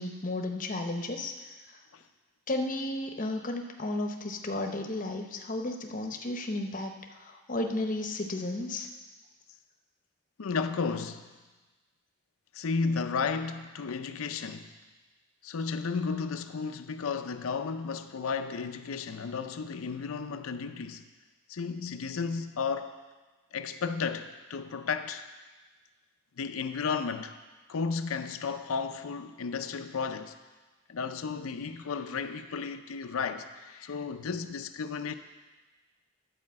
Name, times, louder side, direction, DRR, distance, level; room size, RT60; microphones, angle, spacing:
voice 1, 0.0-1.8 2.5-8.9, left 2 dB, 40° left, 0.8 m, -33 dB
voice 2, 10.4-11.3 12.5-14.7 15.4-21.0 21.5-23.0 23.5-25.3 26.4-27.3 27.7-30.3 30.9-35.1, left 5 dB, 80° left, 0.5 m, -33 dB
11.0 x 5.0 x 7.4 m
head